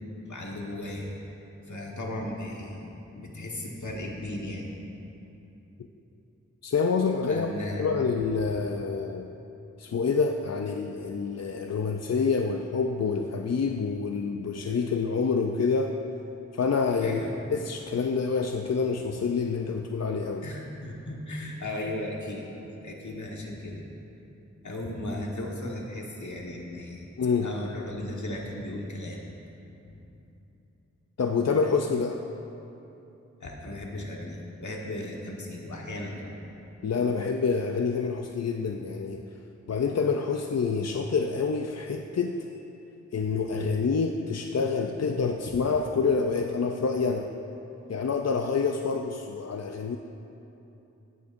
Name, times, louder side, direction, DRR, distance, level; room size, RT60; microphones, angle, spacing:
voice 1, 0.2-1.1 1.7-2.8 3.1-4.7 7.3-7.9 17.0-17.4 20.4-23.8 24.6-27.1 27.4-29.2 29.8-30.0 33.4-36.4 45.5-45.6, left 1 dB, 80° left, -1 dB, 1.5 m, -36 dB
voice 2, 6.6-7.5 7.8-9.3 9.8-16.0 16.5-17.2 17.5-20.4 27.2-27.5 31.2-32.2 36.8-39.2 39.7-42.5 43.1-47.3 47.9-50.0, left 5 dB, 60° left, 4 dB, 0.5 m, -27 dB
16.0 x 10.5 x 2.6 m, 2.9 s
wide cardioid pair, 70°, 29 cm